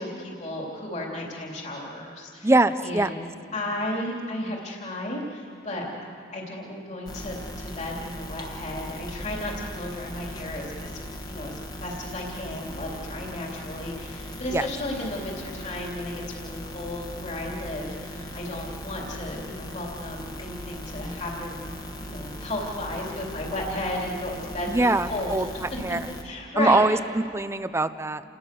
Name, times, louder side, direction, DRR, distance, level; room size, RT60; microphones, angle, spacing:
voice 1, 0.0-2.5 2.8-3.2 3.5-5.9 6.3-21.7 22.0-25.4 26.2-26.8, left 1 dB, 40° left, -2 dB, 3.4 m, -34 dB
voice 2, 2.4-3.1 14.5-14.7 24.7-26.0 26.6-28.2, right 2 dB, 15° right, 12 dB, 0.6 m, -23 dB
sound 1, 7.1-26.2, equal, 20° left, 1.6 m, -38 dB
29.0 x 20.0 x 6.9 m, 2.5 s
head